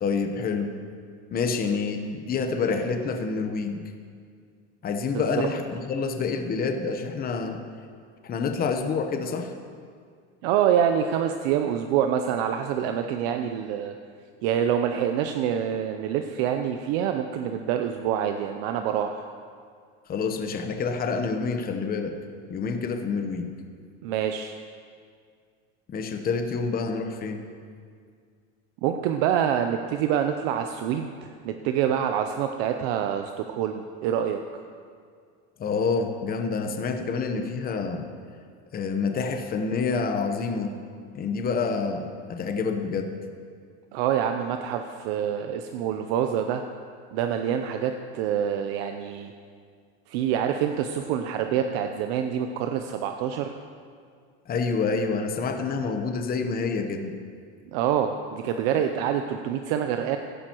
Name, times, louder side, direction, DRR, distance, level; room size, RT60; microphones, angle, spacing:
voice 1, 0.0-0.7 1.3-3.8 4.8-7.6 8.2-9.5 20.1-22.2 22.5-23.5 25.9-27.4 35.6-38.0 38.7-40.7 41.1-43.1 54.5-57.1, left 4 dB, 25° left, 6 dB, 1.0 m, -27 dB
voice 2, 10.4-13.9 14.4-19.2 24.0-24.5 28.8-34.4 43.9-46.6 47.1-49.3 50.1-53.5 57.7-60.2, right 9 dB, 65° right, 6 dB, 0.7 m, -26 dB
16.5 x 11.5 x 3.0 m, 2.1 s
supercardioid pair, 125°, 33 cm